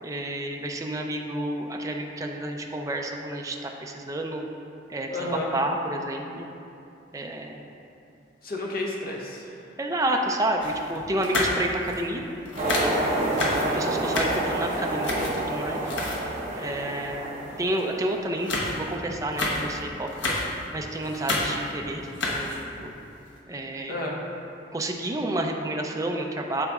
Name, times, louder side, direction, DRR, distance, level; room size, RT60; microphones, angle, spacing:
voice 1, 0.0-4.4 4.9-5.1 5.5-6.5 7.1-7.6 9.8-12.2 12.8-13.2 13.6-15.8 16.5-20.1 20.7-22.9 23.5-24.0 24.7-26.7, right 1 dB, 20° right, 1 dB, 0.4 m, -30 dB
voice 2, 5.1-5.5 8.4-9.6 17.4-17.6 23.9-24.2, left 2 dB, 50° left, -2 dB, 0.9 m, -31 dB
sound 1, 10.6-12.2 12.4-16.5 16.9-17.1 17.5-17.9 18.2-20.7 20.9-21.8 22.0-22.8 23.3-23.4, left 2 dB, 80° left, 1.0 m, -30 dB
sound 2, 12.6-18.1, right 1 dB, 40° right, 1.0 m, -28 dB
12.0 x 4.1 x 2.4 m, 2.7 s
head